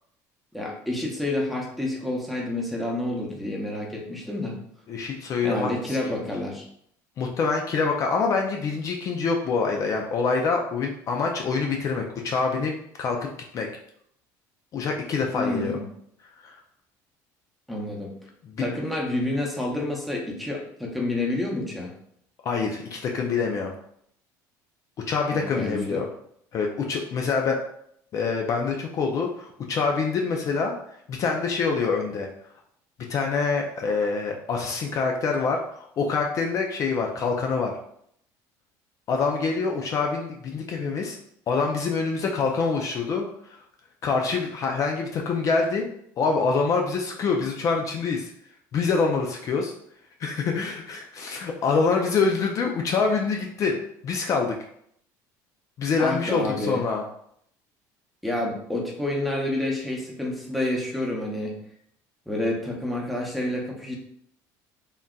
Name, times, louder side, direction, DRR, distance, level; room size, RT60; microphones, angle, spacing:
voice 1, 0.5-4.6 5.4-6.6 15.3-15.9 17.7-18.1 18.6-21.9 25.3-26.0 56.0-56.8 58.2-61.6 62.3-64.0, left 1 dB, ahead, -2 dB, 0.7 m, -29 dB
voice 2, 4.9-6.0 7.2-13.7 14.7-15.8 16.4-16.6 18.4-18.7 22.4-23.7 25.1-26.1 26.5-27.6 28.1-30.7 31.1-32.3 33.1-37.7 39.1-41.2 41.5-43.3 44.0-45.9 46.2-48.3 48.7-49.7 50.2-53.8 54.0-54.6 55.8-57.0, left 4 dB, 45° left, 1 dB, 0.4 m, -25 dB
3.6 x 2.6 x 2.3 m, 0.69 s
cardioid pair, 115°, 8 cm